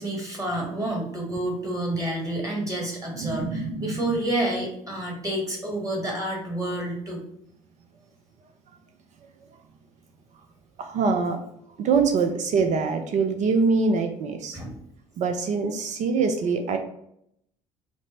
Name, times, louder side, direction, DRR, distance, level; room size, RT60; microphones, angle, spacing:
voice 1, 0.0-7.2 14.5-14.8, right 1 dB, 20° right, -1 dB, 1.5 m, -29 dB
voice 2, 3.1-4.2 9.2-9.3 10.8-11.4 11.7-14.6 15.2-16.8, right 4 dB, 40° right, 6 dB, 0.5 m, -24 dB
5.1 x 2.0 x 3.1 m, 0.73 s
figure-of-eight pair, 55°, 18 cm